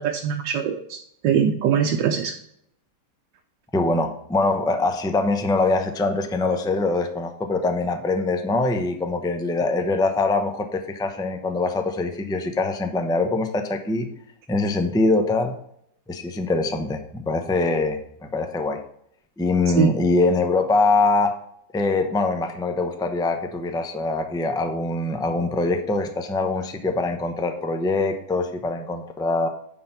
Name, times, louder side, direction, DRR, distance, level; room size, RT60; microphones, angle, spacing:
voice 1, 0.0-2.3 19.8-19.9, right 8 dB, 90° right, 3 dB, 1.4 m, -22 dB
voice 2, 3.7-14.1 14.5-15.5 16.1-18.8 19.4-21.4 21.7-29.5, left 3 dB, 5° left, 6 dB, 0.3 m, -23 dB
9.3 x 4.2 x 5.8 m, 0.70 s
omnidirectional pair, 1.9 m